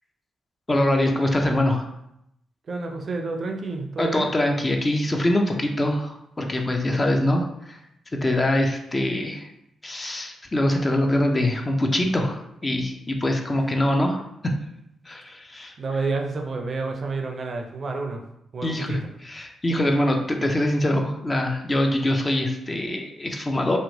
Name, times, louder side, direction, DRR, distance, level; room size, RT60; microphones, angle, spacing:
voice 1, 0.7-1.9 4.0-7.8 8.2-9.5 9.8-14.5 15.1-15.7 18.6-23.8, left 1 dB, 30° left, 3 dB, 0.5 m, -24 dB
voice 2, 2.7-4.3 6.9-7.1 14.0-14.1 15.8-18.2 18.5-19.1, right 3 dB, 55° right, 3 dB, 0.4 m, -29 dB
2.8 x 2.1 x 2.8 m, 0.79 s
supercardioid pair, 45°, 0 cm